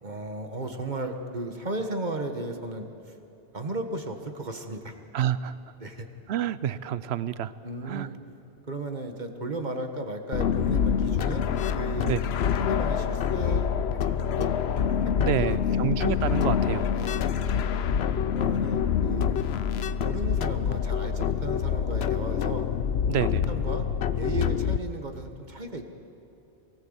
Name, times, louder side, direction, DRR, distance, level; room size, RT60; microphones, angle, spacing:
voice 1, 0.0-3.1 3.5-5.0 5.8-6.1 7.6-8.2 8.7-11.5 11.7-12.1 12.6-14.5 14.9-15.8 16.9-17.2 18.3-19.4 20.0-22.7 23.5-23.9 24.1-25.9, right 2 dB, 40° right, 5 dB, 1.5 m, -35 dB
voice 2, 5.1-5.6 6.3-7.5 7.8-8.1 12.0-12.2 15.2-16.9 23.1-23.5, right 9 dB, 70° right, 16 dB, 1.0 m, -28 dB
sound 1, 10.3-24.8, left 8 dB, 70° left, 0.9 m, -26 dB
23.0 x 18.0 x 8.1 m, 2.9 s
omnidirectional pair, 1.2 m